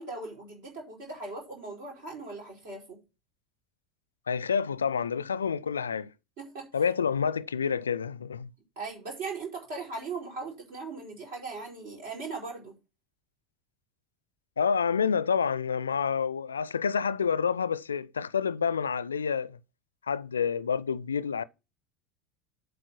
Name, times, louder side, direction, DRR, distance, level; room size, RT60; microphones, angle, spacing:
voice 1, 0.0-3.0 6.4-6.7 8.8-12.7, right 3 dB, 60° right, 4.3 m, -39 dB
voice 2, 4.3-6.1 6.7-8.5 14.6-19.6 20.1-21.4, left 6 dB, 75° left, 0.4 m, -28 dB
8.1 x 4.7 x 6.1 m
figure-of-eight pair, 75°, 0 cm